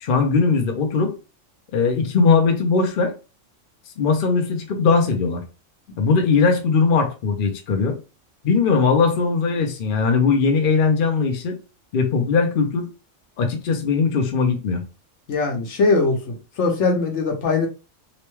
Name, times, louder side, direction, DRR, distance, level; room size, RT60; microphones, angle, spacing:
voice 1, 0.0-1.1 1.7-3.1 4.0-5.4 6.0-8.0 8.4-11.6 11.9-12.9 13.4-14.8, left 5 dB, 55° left, 0.7 m, -19 dB
voice 2, 15.3-17.7, left 3 dB, 70° left, 1.1 m, -21 dB
3.0 x 2.2 x 3.1 m
omnidirectional pair, 1.3 m